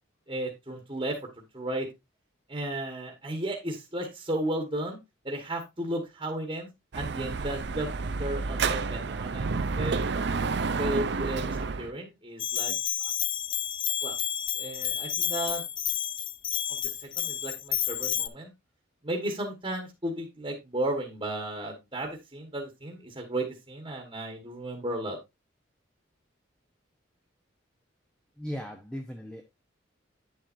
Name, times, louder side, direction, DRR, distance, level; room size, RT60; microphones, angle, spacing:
voice 1, 0.3-1.2 1.5-1.9 2.5-5.0 5.2-6.7 6.9-7.9 8.2-10.0 10.8-13.1 14.0-14.2 14.6-15.6 16.7-18.5 19.0-25.2, right 1 dB, 25° right, 1.4 m, -34 dB
Dog / Motorcycle, 6.9-11.9, right 4 dB, 55° right, 0.5 m, -30 dB
Bell, 12.4-18.3, left 10 dB, 25° left, 0.3 m, -30 dB
voice 2, 28.4-29.4, equal, 5° left, 0.7 m, -37 dB
9.1 x 7.3 x 2.6 m
head